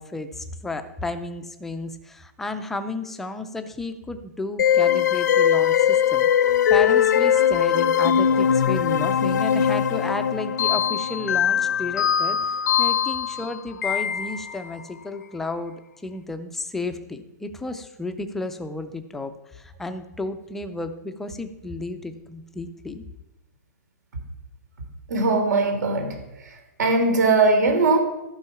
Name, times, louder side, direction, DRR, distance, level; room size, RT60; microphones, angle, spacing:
voice 1, 0.0-6.3 6.7-12.4 12.8-15.7 16.0-23.0, left 2 dB, 5° left, 8 dB, 0.3 m, -32 dB
sound 1, 4.6-14.7, left 8 dB, 75° left, 0.6 m, -21 dB
voice 2, 25.1-28.0, right 3 dB, 85° right, 5 dB, 3.1 m, -21 dB
14.0 x 5.4 x 5.7 m, 0.93 s
hypercardioid pair, 175°, 9 cm